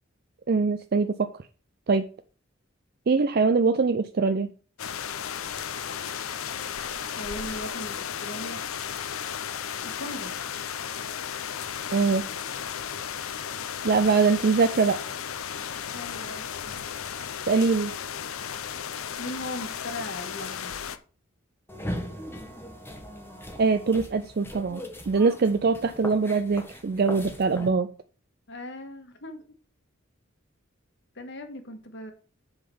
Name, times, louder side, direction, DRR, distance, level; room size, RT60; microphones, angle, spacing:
voice 1, 0.5-1.3 1.9-2.1 3.1-4.5 11.9-12.2 13.8-15.0 17.5-17.9 23.6-27.9, right 4 dB, 45° right, 10 dB, 0.4 m, -23 dB
sound 1, 4.8-21.0, left 8 dB, 85° left, 0.6 m, -34 dB
voice 2, 7.2-8.6 9.8-10.4 15.9-16.7 19.2-20.7 28.5-29.4 31.1-32.1, left 1 dB, 60° left, 6 dB, 1.6 m, -38 dB
sound 2, 21.7-27.7, equal, 10° left, 1.1 m, -39 dB
7.9 x 3.9 x 6.8 m, 0.39 s
head